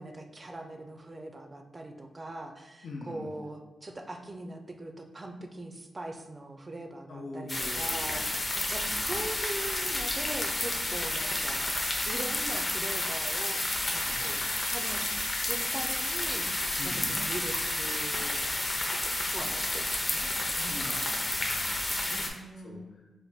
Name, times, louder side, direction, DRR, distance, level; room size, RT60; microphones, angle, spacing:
voice 1, 0.0-11.7 12.0-13.6 13.9-14.4 14.7-18.5 18.9-20.9 22.1-22.9, right 2 dB, 25° right, 5 dB, 0.4 m, -41 dB
voice 2, 2.8-3.3 7.1-8.5 8.9-9.3 14.0-14.5 16.8-17.3 20.5-22.1 22.6-22.8, left 2 dB, 70° left, 0 dB, 0.5 m, -43 dB
sound 1, 7.5-22.3, left 1 dB, 25° left, 0.6 m, -31 dB
3.4 x 2.2 x 3.9 m, 1.2 s
wide cardioid pair, 105°, 0 cm